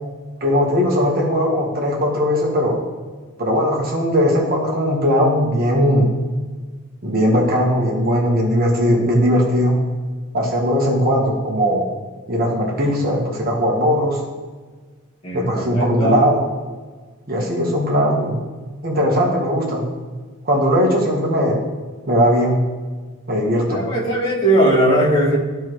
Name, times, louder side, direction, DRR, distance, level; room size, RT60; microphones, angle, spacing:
voice 1, 0.4-2.7 3.4-6.1 7.0-9.8 10.3-11.8 12.3-14.2 15.3-16.5 17.3-18.4 18.8-19.8 20.4-21.6 22.1-22.6 23.3-23.8, equal, 40° right, -2 dB, 1.5 m, -18 dB
voice 2, 15.2-16.2 23.6-25.4, right 1 dB, 30° left, -8 dB, 2.3 m, -18 dB
13.0 x 4.6 x 3.3 m, 1.4 s
head